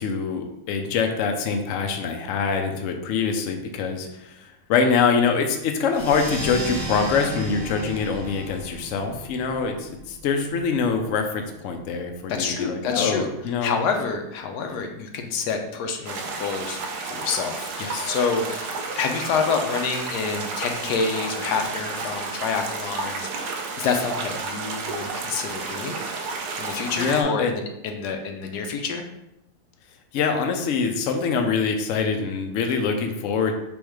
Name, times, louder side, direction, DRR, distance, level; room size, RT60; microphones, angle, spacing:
voice 1, 0.0-13.8 17.8-18.2 26.9-27.5 30.1-33.5, left 5 dB, 65° left, 4 dB, 0.8 m, -24 dB
sound 1, 5.9-11.0, right 1 dB, 15° right, 1.2 m, -34 dB
voice 2, 12.3-13.3 13.6-16.8 17.1-23.5 23.8-26.0 26.6-29.1, left 5 dB, 85° left, 4 dB, 1.2 m, -28 dB
sound 2, 16.1-27.2, right 4 dB, 85° right, 1.2 m, -32 dB
3.5 x 3.1 x 4.8 m, 0.86 s
omnidirectional pair, 1.7 m